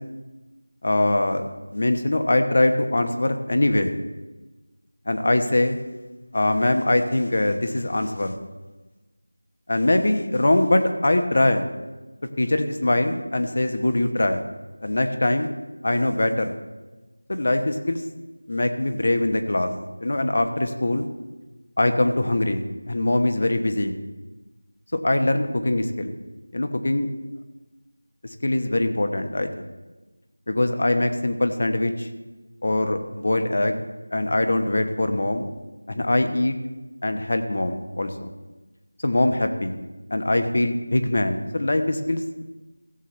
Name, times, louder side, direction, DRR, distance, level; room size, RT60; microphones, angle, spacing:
voice 1, 0.8-3.9 5.1-5.8 6.3-8.4 9.7-11.7 12.4-14.4 14.8-15.5 15.8-16.5 17.3-18.0 18.5-19.7 20.0-21.1 21.8-24.0 24.9-26.1 26.5-27.1 28.4-29.6 30.5-32.1 32.6-33.8 34.1-35.5 35.9-36.5 37.0-38.3 39.0-39.7 40.1-42.4, left 1 dB, 45° left, 7 dB, 1.1 m, -22 dB
16.5 x 8.2 x 3.3 m, 1.2 s
figure-of-eight pair, 175°, 0 cm